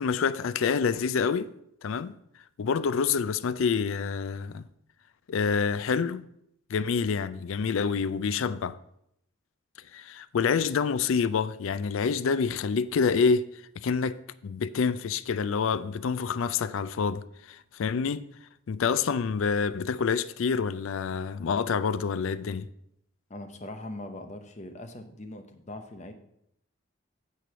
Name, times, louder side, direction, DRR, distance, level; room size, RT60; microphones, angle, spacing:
voice 1, 0.0-1.5 1.8-2.2 2.6-4.6 5.3-6.2 6.7-8.8 9.9-13.5 13.8-18.3 18.7-22.7, left 5 dB, 65° left, 0.4 m, -27 dB
voice 2, 23.3-26.1, left 1 dB, 35° left, 0.7 m, -41 dB
8.4 x 4.6 x 6.1 m
head